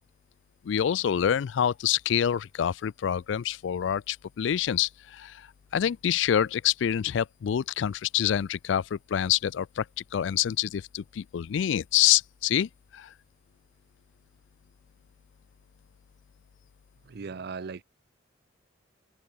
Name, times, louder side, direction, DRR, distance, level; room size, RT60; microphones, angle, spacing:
voice 1, 0.6-5.4 5.7-9.9 10.1-13.1, left 10 dB, 70° left, 0.3 m, -26 dB
voice 2, 17.0-17.8, right 5 dB, 60° right, 0.5 m, -38 dB
head